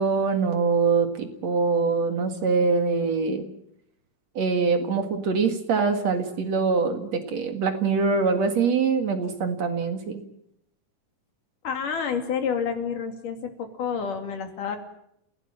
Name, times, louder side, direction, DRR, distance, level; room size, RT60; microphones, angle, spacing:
voice 1, 0.0-3.4 4.4-10.2, right 4 dB, 55° right, 7 dB, 3.0 m, -24 dB
voice 2, 11.6-14.8, left 6 dB, 70° left, 6 dB, 4.1 m, -29 dB
30.0 x 17.0 x 7.6 m, 0.77 s
omnidirectional pair, 3.9 m